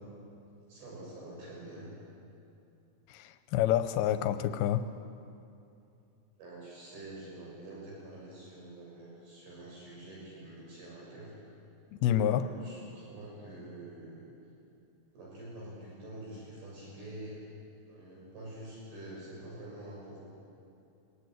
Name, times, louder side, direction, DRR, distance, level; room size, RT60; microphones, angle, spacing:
voice 1, 0.7-1.9 6.4-11.3 12.2-14.2 15.1-17.4 17.9-20.2, right 1 dB, 80° right, -4 dB, 8.5 m, -46 dB
voice 2, 3.1-4.9 12.0-12.5, left 11 dB, 90° left, 10 dB, 2.7 m, -28 dB
24.5 x 21.5 x 9.3 m, 2.7 s
omnidirectional pair, 4.3 m